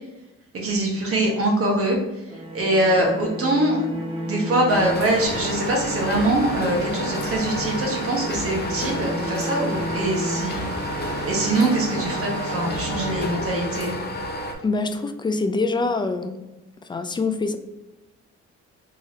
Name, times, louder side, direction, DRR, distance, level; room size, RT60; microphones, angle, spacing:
voice 1, 0.5-2.0 2.5-14.0, right 1 dB, 50° right, -1 dB, 1.3 m, -23 dB
sound 1, 2.3-13.8, right 1 dB, 15° right, 1.3 m, -33 dB
sound 2, 4.7-14.5, left 1 dB, 35° left, 0.7 m, -31 dB
sound 3, 5.2-12.7, right 6 dB, 65° right, 0.5 m, -39 dB
voice 2, 14.6-16.5 16.9-17.6, left 3 dB, 15° left, 8 dB, 0.3 m, -24 dB
3.6 x 3.1 x 2.7 m, 1.0 s
cardioid pair, 90°, 30 cm